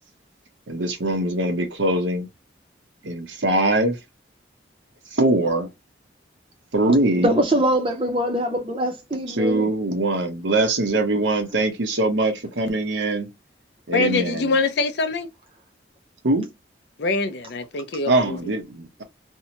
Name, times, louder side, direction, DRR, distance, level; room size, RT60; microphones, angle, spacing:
voice 1, 0.7-2.3 3.0-4.0 5.1-5.7 6.7-7.3 9.4-13.3 13.9-14.5 16.2-16.5 18.1-19.0, right 2 dB, 85° right, 0.8 m, -22 dB
voice 2, 7.2-9.7, right 1 dB, 30° right, 0.6 m, -23 dB
voice 3, 13.9-15.3 17.0-18.5, left 3 dB, 65° left, 0.5 m, -24 dB
2.7 x 2.1 x 2.8 m
head